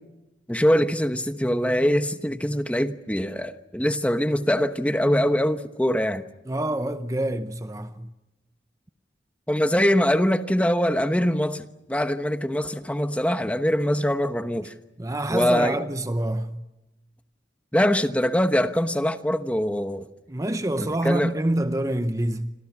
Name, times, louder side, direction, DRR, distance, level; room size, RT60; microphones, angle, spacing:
voice 1, 0.5-6.2 9.5-14.7 15.3-15.8 17.7-20.1 20.8-21.3, equal, 5° left, 1.0 m, -23 dB
voice 2, 6.5-8.1 15.0-16.6 20.3-22.5, right 1 dB, 20° right, 0.8 m, -26 dB
27.0 x 26.5 x 6.0 m
head